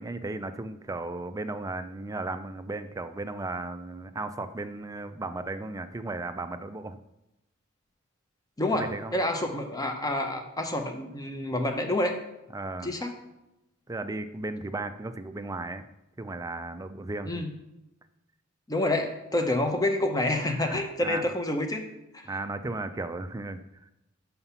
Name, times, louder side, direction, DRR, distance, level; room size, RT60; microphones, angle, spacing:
voice 1, 0.0-7.0 8.7-9.2 12.5-12.9 13.9-15.8 16.2-17.4 20.6-21.2 22.3-23.9, right 2 dB, 15° right, 9 dB, 0.4 m, -35 dB
voice 2, 8.6-12.2 12.8-13.1 17.3-17.5 18.7-21.9 22.1-22.3, left 1 dB, 20° left, 5 dB, 0.8 m, -28 dB
5.8 x 5.6 x 5.6 m, 0.91 s
head